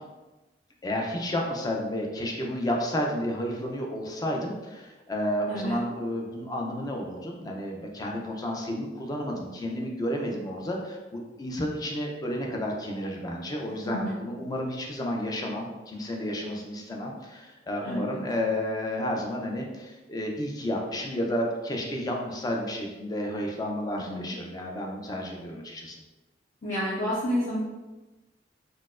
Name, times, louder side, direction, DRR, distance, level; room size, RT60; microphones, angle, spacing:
voice 1, 0.8-26.0, left 1 dB, 20° left, 0 dB, 0.4 m, -31 dB
voice 2, 13.7-14.1 17.8-18.2 24.0-24.3 26.6-27.6, equal, 45° left, -13 dB, 0.9 m, -30 dB
4.2 x 2.1 x 2.4 m, 1.1 s
head